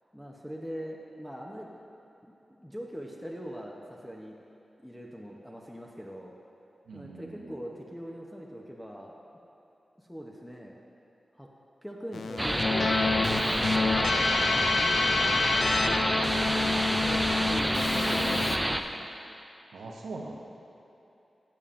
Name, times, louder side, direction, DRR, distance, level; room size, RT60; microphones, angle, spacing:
voice 1, 0.1-1.7 2.3-4.3 4.8-6.3 6.9-9.1 10.0-10.8 11.3-11.5 11.8-14.2 15.3-19.1, equal, 5° left, -2 dB, 0.8 m, -42 dB
voice 2, 6.9-7.6 19.7-20.3, right 3 dB, 90° right, -1 dB, 0.8 m, -41 dB
Keyboard (musical), 12.1-18.6, left 4 dB, 80° left, 0.4 m, -28 dB
sound 1, 12.4-18.8, right 1 dB, 10° right, 0.4 m, -28 dB
12.0 x 7.1 x 2.6 m, 2.9 s
cardioid pair, 50°, 0 cm